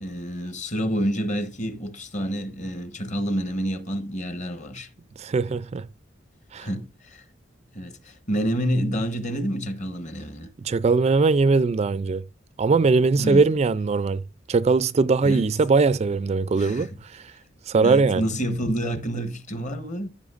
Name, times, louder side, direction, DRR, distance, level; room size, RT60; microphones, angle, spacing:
voice 1, 0.0-4.9 6.6-7.2 7.7-10.5 13.2-13.5 15.2-15.5 16.6-17.0 17.8-20.1, equal, 40° left, 1.2 m, -28 dB
voice 2, 5.2-5.9 6.5-6.7 10.6-12.2 12.6-14.2 14.5-17.3 17.7-18.2, right 4 dB, 35° right, 0.3 m, -21 dB
14.5 x 5.5 x 2.5 m
head